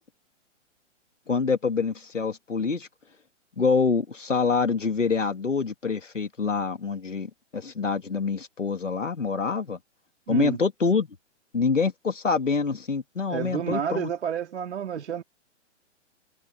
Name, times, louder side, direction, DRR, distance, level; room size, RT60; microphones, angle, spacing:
voice 1, 1.3-2.9 3.6-9.8 10.3-11.1 11.5-14.1, left 5 dB, 90° left, 2.7 m, -26 dB
voice 2, 10.3-10.6 13.3-15.2, right 8 dB, 65° right, 3.2 m, -30 dB
figure-of-eight pair, 120°, 36 cm